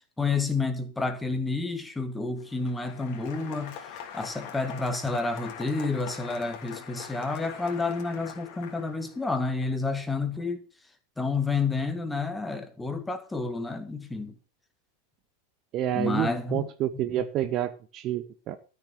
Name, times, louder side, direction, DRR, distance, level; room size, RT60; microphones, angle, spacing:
voice 1, 0.2-3.8 4.1-10.6 11.2-14.3 15.9-16.7 16.9-17.3, left 3 dB, 10° left, 1.9 m, -30 dB
Applause, 2.4-9.3, left 7 dB, 45° left, 2.7 m, -43 dB
voice 2, 15.7-18.6, right 12 dB, 35° right, 0.8 m, -29 dB
13.0 x 6.6 x 6.6 m
figure-of-eight pair, 90°, 0 cm